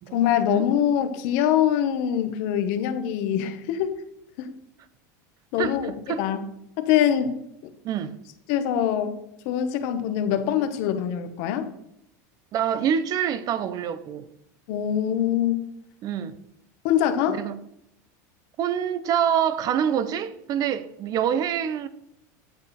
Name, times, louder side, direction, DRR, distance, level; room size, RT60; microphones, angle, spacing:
voice 1, 0.1-3.9 4.4-4.5 5.5-6.4 6.8-7.3 8.5-9.2 9.4-11.7 14.7-15.7 16.8-17.4, left 10 dB, 65° left, 1.4 m, -24 dB
voice 2, 5.6-6.3 7.8-8.2 12.5-14.3 16.0-16.4 17.3-17.6 18.6-21.9, right 9 dB, 40° right, 0.8 m, -26 dB
9.5 x 8.2 x 4.4 m
supercardioid pair, 125°, 9 cm